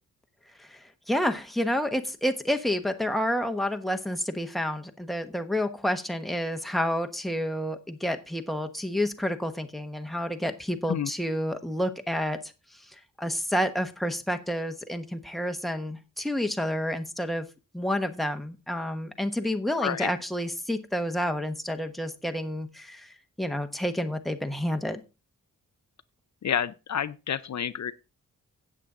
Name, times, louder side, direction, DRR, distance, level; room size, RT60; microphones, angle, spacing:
voice 1, 0.6-12.4 12.7-17.5 17.7-25.0, equal, ahead, 1.1 m, -29 dB
voice 2, 26.4-27.9, left 8 dB, 55° left, 0.6 m, -29 dB
12.5 x 8.5 x 3.8 m
wide cardioid pair, 120°, 33 cm